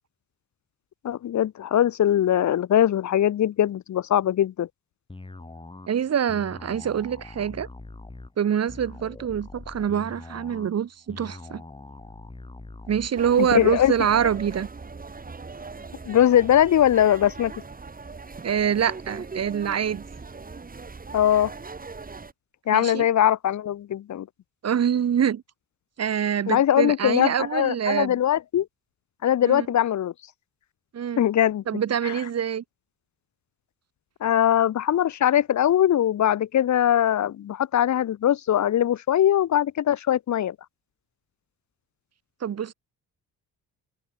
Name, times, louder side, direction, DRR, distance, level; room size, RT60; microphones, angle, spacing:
voice 1, 1.0-4.7 13.5-13.9 16.1-17.5 21.1-21.5 22.7-24.3 26.5-28.7 29.2-30.1 31.2-31.6 32.0-32.1 34.2-40.5, left 11 dB, 60° left, 0.8 m, -21 dB
sound 1, 5.1-14.7, left 2 dB, 15° left, 2.8 m, -43 dB
voice 2, 5.9-7.7 8.4-11.6 12.9-14.7 18.4-20.0 22.7-23.1 24.6-25.4 26.0-28.2 29.4-29.7 30.9-31.3 31.7-32.6 42.4-42.7, right 8 dB, 50° right, 1.3 m, -25 dB
sound 2, 13.1-22.3, right 4 dB, 25° right, 2.8 m, -40 dB
cardioid pair, 110°, 33 cm